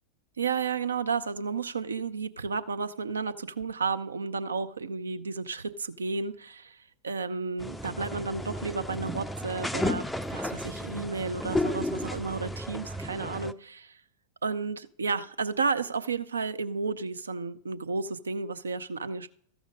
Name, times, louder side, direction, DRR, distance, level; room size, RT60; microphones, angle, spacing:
voice 1, 0.4-6.8 7.0-14.0 14.4-19.3, right 4 dB, 75° right, 0.5 m, -32 dB
sound 1, 7.6-13.5, left 1 dB, 5° left, 0.4 m, -33 dB
13.5 x 5.0 x 5.1 m
figure-of-eight pair, 90°, 0 cm